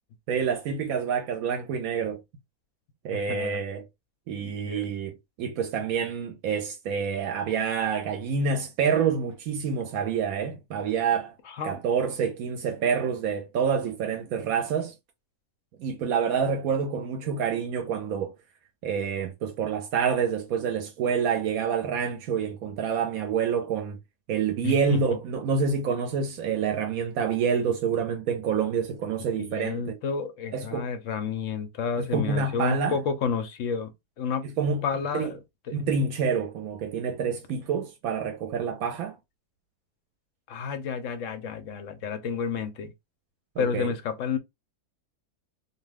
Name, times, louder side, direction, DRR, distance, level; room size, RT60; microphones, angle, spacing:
voice 1, 0.3-2.2 3.0-3.8 4.3-11.3 11.6-14.9 15.8-18.3 18.8-24.0 24.3-30.0 30.5-30.9 32.0-33.0 34.4-34.8 35.1-35.3 35.7-39.1 43.6-43.9, right 6 dB, 80° right, 1.0 m, -27 dB
voice 2, 3.3-3.6 4.4-4.9 11.5-11.8 24.6-25.0 29.4-33.9 34.2-34.4 34.8-35.4 35.7-35.8 40.5-42.9 43.6-44.4, left 6 dB, 70° left, 0.9 m, -30 dB
2.6 x 2.2 x 3.3 m
omnidirectional pair, 1.5 m